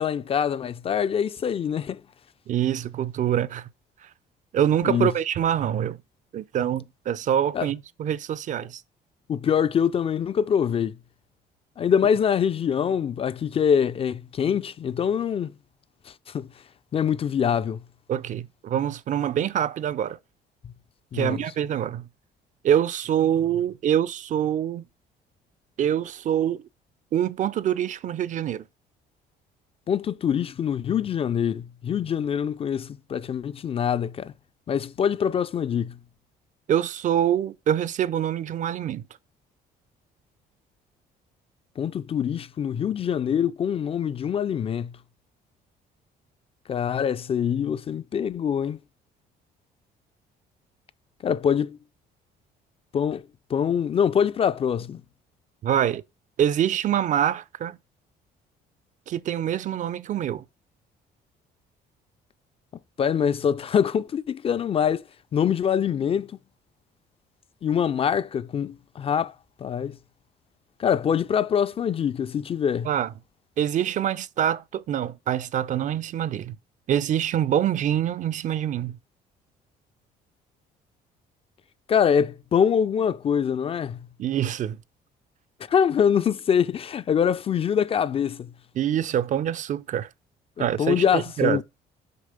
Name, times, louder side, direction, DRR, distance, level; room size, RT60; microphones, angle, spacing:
voice 1, 0.0-2.0 4.8-5.1 7.5-7.7 9.3-11.0 11.8-15.5 16.1-16.5 16.9-17.8 21.1-21.4 29.9-34.3 34.7-36.0 41.8-44.9 46.7-48.8 51.2-51.8 52.9-53.2 53.5-55.0 63.0-65.0 65.3-66.3 67.6-69.3 69.6-70.0 70.8-72.9 81.9-84.0 85.7-88.5 90.8-91.6, left 8 dB, 35° left, 0.4 m, -24 dB
voice 2, 2.5-3.7 4.5-6.0 6.3-8.8 18.1-20.2 21.1-22.1 22.6-24.8 25.8-26.6 27.1-28.6 36.7-39.0 55.6-56.0 56.4-57.8 59.1-60.4 72.8-73.1 73.6-76.6 76.9-79.0 84.2-84.8 88.8-90.1 90.6-91.6, right 10 dB, 50° right, 0.5 m, -25 dB
6.7 x 4.7 x 5.1 m
cardioid pair, 110°, 17 cm